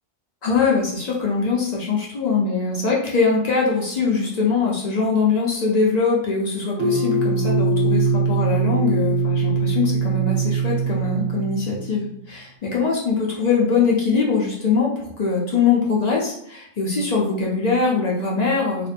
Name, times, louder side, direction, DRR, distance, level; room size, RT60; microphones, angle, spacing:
voice 1, 0.4-18.9, left 4 dB, 55° left, -3 dB, 0.4 m, -22 dB
sound 1, 6.8-12.0, right 4 dB, 85° right, 1.0 m, -22 dB
2.5 x 2.1 x 2.5 m, 0.71 s
omnidirectional pair, 1.3 m